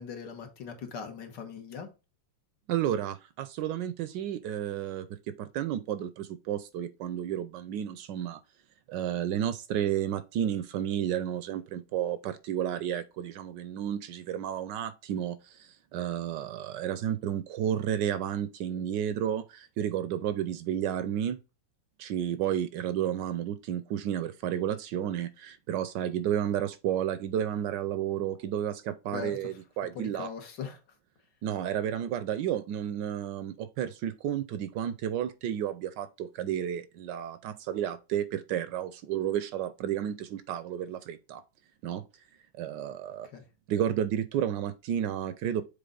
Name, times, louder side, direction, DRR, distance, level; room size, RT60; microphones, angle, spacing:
voice 1, 0.0-1.9 29.1-29.4 30.0-30.8 43.3-43.4, left 7 dB, 65° left, 1.8 m, -40 dB
voice 2, 2.7-8.4 8.9-21.4 22.0-30.3 31.4-41.4 41.8-42.0 42.6-43.3 43.7-45.6, right 10 dB, 75° right, 1.1 m, -32 dB
6.8 x 3.8 x 3.8 m
omnidirectional pair, 2.1 m